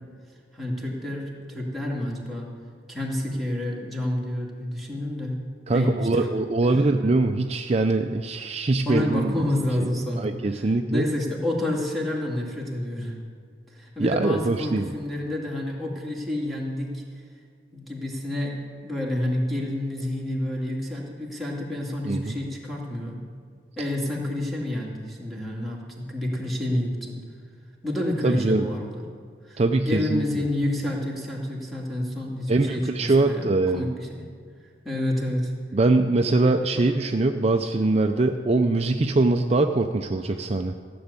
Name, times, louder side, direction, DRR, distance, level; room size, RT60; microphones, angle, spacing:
voice 1, 0.5-2.5 2.9-5.4 5.7-6.3 6.6-6.8 8.8-10.4 10.9-13.1 13.7-17.0 17.7-18.5 18.8-23.2 23.8-27.2 27.8-29.1 29.4-34.3 34.8-35.5 36.7-36.8, left 1 dB, ahead, -4 dB, 2.4 m, -29 dB
voice 2, 5.7-9.3 9.8-11.1 14.0-14.9 22.0-22.4 28.2-28.7 29.6-30.5 32.5-33.9 35.7-40.7, right 2 dB, 35° right, 5 dB, 0.5 m, -23 dB
15.5 x 7.0 x 9.7 m, 2.1 s
head